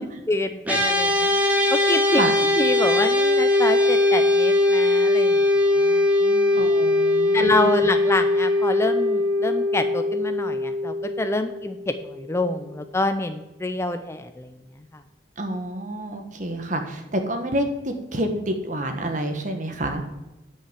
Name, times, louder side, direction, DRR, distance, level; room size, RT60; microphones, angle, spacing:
voice 1, 0.3-2.2 2.5-6.7 7.3-14.6 14.9-15.0, left 2 dB, 15° left, 8 dB, 0.5 m, -27 dB
sound 1, 0.6-12.1, left 2 dB, 10° right, 1.8 m, -21 dB
voice 2, 6.5-7.7 15.4-20.0, right 1 dB, 45° right, 5 dB, 1.4 m, -28 dB
10.0 x 5.6 x 7.5 m, 0.97 s
head